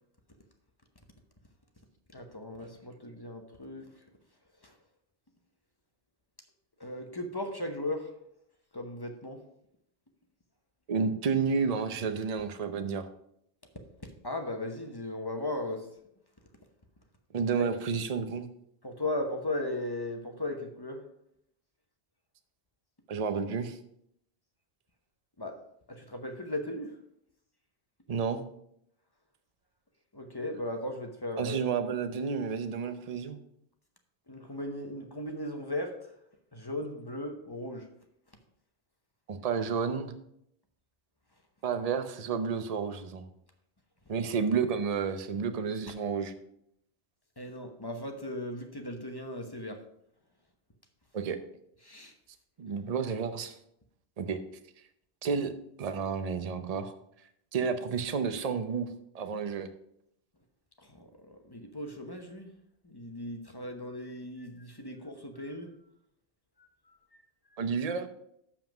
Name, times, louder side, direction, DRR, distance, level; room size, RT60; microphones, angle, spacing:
voice 1, 2.1-3.9 4.6-4.7 6.8-8.1 8.7-9.4 14.2-15.9 17.6-17.7 18.8-21.0 25.4-25.6 25.9-27.0 30.1-31.7 34.3-36.1 36.5-37.9 47.4-49.8 51.8-52.1 60.8-62.5 62.8-65.7 66.6-66.7 67.1-67.2, left 1 dB, 25° left, 4 dB, 0.9 m, -37 dB
voice 2, 10.9-13.1 17.3-18.5 23.1-23.8 28.1-28.4 31.4-33.4 39.3-40.1 41.6-43.2 44.1-46.3 51.1-51.4 52.6-53.5 54.2-54.4 55.2-55.5 55.8-56.9 57.5-58.9 59.1-59.7 67.6-68.1, right 5 dB, 40° right, 9 dB, 0.7 m, -31 dB
7.2 x 5.7 x 6.0 m, 0.73 s
omnidirectional pair, 1.1 m